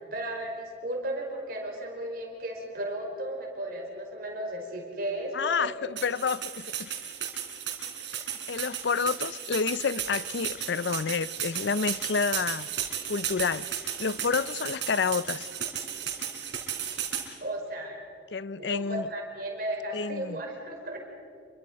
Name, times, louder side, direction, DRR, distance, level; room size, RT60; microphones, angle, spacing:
voice 1, 0.1-5.7 17.4-18.0 18.6-21.0, right 1 dB, 50° right, 4.9 m, -35 dB
voice 2, 5.3-6.9 8.5-12.7 13.1-13.7 14.0-15.5 18.3-19.1 19.9-20.4, left 5 dB, 70° left, 0.5 m, -29 dB
sound 1, 6.0-17.3, right 9 dB, 75° right, 4.1 m, -34 dB
27.5 x 23.5 x 5.3 m
head